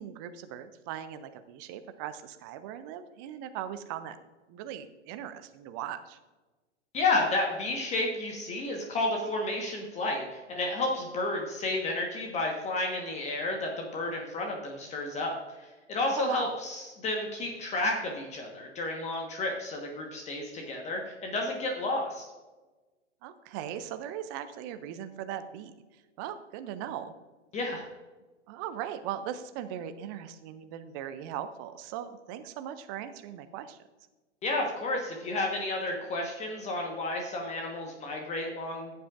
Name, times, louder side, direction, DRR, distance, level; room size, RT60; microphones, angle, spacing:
voice 1, 0.0-4.2 4.5-6.2 16.1-16.5 23.2-25.7 26.2-27.1 28.5-33.8, right 10 dB, 20° right, 11 dB, 0.3 m, -39 dB
voice 2, 6.9-22.2 27.5-27.8 34.4-39.0, left 2 dB, 20° left, 1 dB, 1.2 m, -31 dB
14.5 x 7.9 x 2.4 m, 1.2 s
figure-of-eight pair, 105°, 35 cm